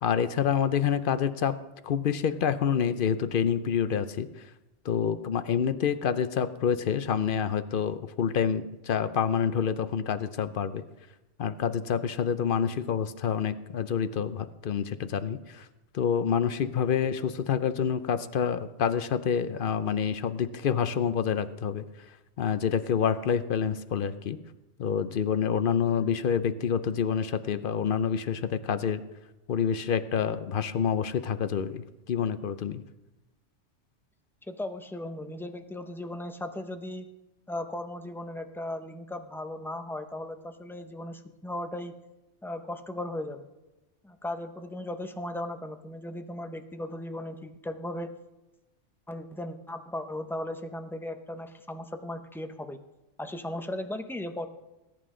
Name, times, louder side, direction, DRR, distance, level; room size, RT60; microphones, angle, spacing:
voice 1, 0.0-1.6 1.8-4.5 4.8-10.8 11.4-15.7 15.9-21.8 22.4-24.4 24.8-29.0 29.5-32.8, left 7 dB, 55° left, 12 dB, 0.7 m, -27 dB
voice 2, 34.5-37.1 37.5-42.0 42.4-43.5 44.0-48.1 49.1-52.8 53.2-54.5, left 1 dB, 5° left, 7 dB, 0.5 m, -37 dB
20.0 x 9.4 x 3.8 m, 1.0 s
omnidirectional pair, 1.2 m